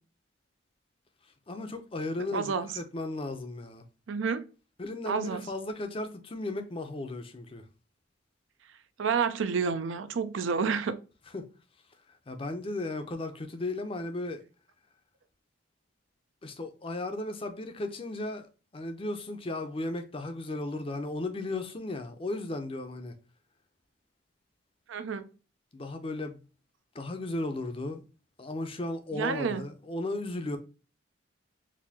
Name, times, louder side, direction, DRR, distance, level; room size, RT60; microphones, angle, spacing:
voice 1, 1.5-3.8 4.8-7.6 11.3-11.5 12.3-14.4 16.4-18.5 18.7-23.1 25.7-26.4 26.9-28.0 28.4-30.6, left 2 dB, 30° left, 0.5 m, -35 dB
voice 2, 2.3-2.7 4.1-4.4 5.1-5.4 9.0-11.0 24.9-25.3 29.1-29.6, right 5 dB, 80° right, 0.5 m, -29 dB
4.1 x 2.6 x 2.7 m
head